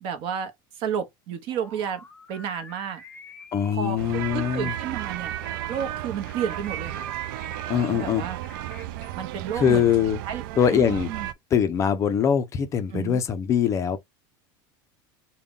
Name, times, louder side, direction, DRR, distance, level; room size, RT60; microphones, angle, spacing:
voice 1, 0.0-3.0 3.7-5.3 5.7-7.1 7.8-8.4 9.2-9.9 10.2-10.4 10.7-11.3 12.9-13.2, right 8 dB, 50° right, 0.8 m, -32 dB
sound 1, 1.5-9.1, left 3 dB, 10° left, 0.8 m, -49 dB
voice 2, 3.5-4.7 7.7-8.2 9.5-10.2 10.6-11.1 11.5-14.0, left 8 dB, 25° left, 0.4 m, -22 dB
sound 2, 4.0-11.3, right 13 dB, 75° right, 0.4 m, -34 dB
3.7 x 2.2 x 3.5 m
supercardioid pair, 150°, 12 cm